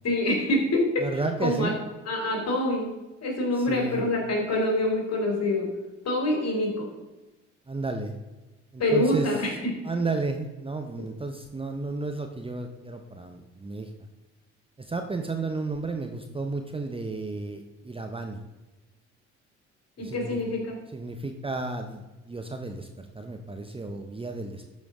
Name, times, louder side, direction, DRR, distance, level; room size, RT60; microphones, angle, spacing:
voice 1, 0.0-0.8 1.4-1.7 2.1-2.9 3.2-5.7 6.0-6.8 8.8-9.5 20.0-20.7, left 1 dB, 45° left, 1 dB, 3.2 m, -25 dB
voice 2, 1.0-1.8 3.6-4.1 7.7-8.1 8.7-9.3 9.8-13.9 14.8-18.4 20.0-20.4 20.9-24.6, right 3 dB, 15° right, 5 dB, 0.8 m, -32 dB
12.0 x 5.2 x 3.7 m, 1.1 s
hypercardioid pair, 50°, 35 cm